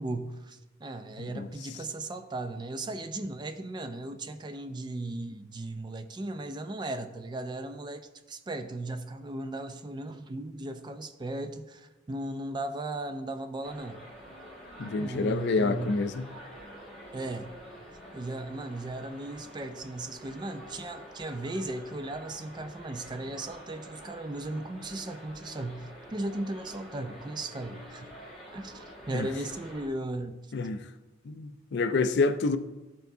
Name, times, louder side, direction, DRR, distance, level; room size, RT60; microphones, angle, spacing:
voice 1, 0.0-14.0 15.0-16.0 17.1-17.5 18.1-28.1 28.5-30.4, right 2 dB, 25° right, 0.4 m, -36 dB
voice 2, 1.2-1.5 14.8-16.3 29.1-29.3 30.5-30.8 31.3-32.6, left 3 dB, 60° left, 0.4 m, -28 dB
sound 1, 13.6-29.9, equal, ahead, 1.6 m, -48 dB
13.0 x 4.5 x 2.7 m
head